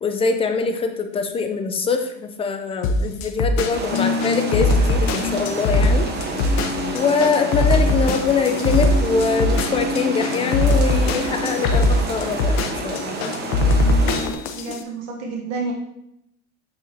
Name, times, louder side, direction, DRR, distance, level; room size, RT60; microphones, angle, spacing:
voice 1, 0.0-6.1 6.9-13.2, left 5 dB, 20° left, 6 dB, 0.3 m, -23 dB
sound 1, 2.8-14.8, left 1 dB, 50° left, 0.7 m, -20 dB
sound 2, 3.7-14.3, right 2 dB, 30° right, 1.0 m, -30 dB
sound 3, 3.9-14.3, left 4 dB, 85° left, 1.2 m, -30 dB
voice 2, 14.5-15.7, right 4 dB, 55° right, 0 dB, 1.0 m, -30 dB
8.9 x 4.1 x 2.7 m, 0.81 s
supercardioid pair, 140°, 33 cm